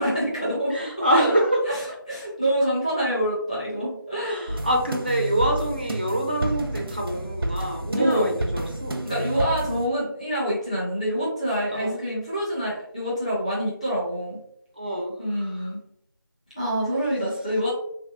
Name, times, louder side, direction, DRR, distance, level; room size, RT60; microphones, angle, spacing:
voice 1, 0.0-1.3 1.6-4.5 7.9-8.3 9.0-14.4 15.2-15.8 16.5-17.7, equal, 15° left, -6 dB, 0.6 m, -26 dB
voice 2, 0.7-1.6 4.2-9.0 11.7-11.9 14.8-15.1 15.4-15.7, right 1 dB, 25° right, 0 dB, 0.3 m, -26 dB
sound 1, 4.5-9.9, right 1 dB, 90° right, 0.6 m, -30 dB
3.1 x 2.6 x 2.3 m, 0.69 s
figure-of-eight pair, 175°, 12 cm